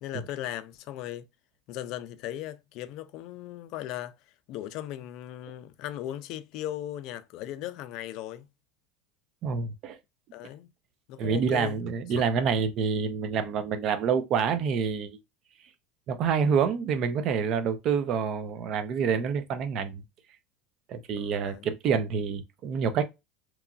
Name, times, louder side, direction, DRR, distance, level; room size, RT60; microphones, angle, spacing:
voice 1, 0.0-1.3 1.7-4.2 4.5-8.5 10.3-10.7 11.1-11.8 21.2-21.7, left 12 dB, 55° left, 0.4 m, -37 dB
voice 2, 9.4-10.0 11.2-15.2 16.1-20.0 20.9-23.0, right 6 dB, 45° right, 0.5 m, -27 dB
2.9 x 2.4 x 2.4 m
supercardioid pair, 135°, 0 cm